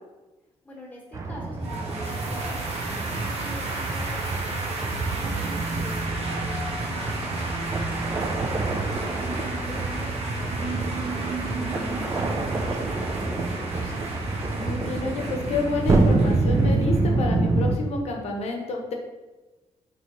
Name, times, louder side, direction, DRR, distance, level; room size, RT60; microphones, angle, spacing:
voice 1, 0.6-7.8 8.4-14.0, equal, 15° left, -4 dB, 1.2 m, -44 dB
sound 1, 1.1-17.8, right 3 dB, 25° right, 0.3 m, -27 dB
sound 2, 1.6-17.1, right 2 dB, 60° right, 0.8 m, -35 dB
sound 3, 2.0-6.1, right 5 dB, 90° right, 0.5 m, -46 dB
voice 2, 14.5-18.9, left 3 dB, 60° left, 1 dB, 0.7 m, -29 dB
3.7 x 3.1 x 3.0 m, 1.2 s
cardioid pair, 120°, 12 cm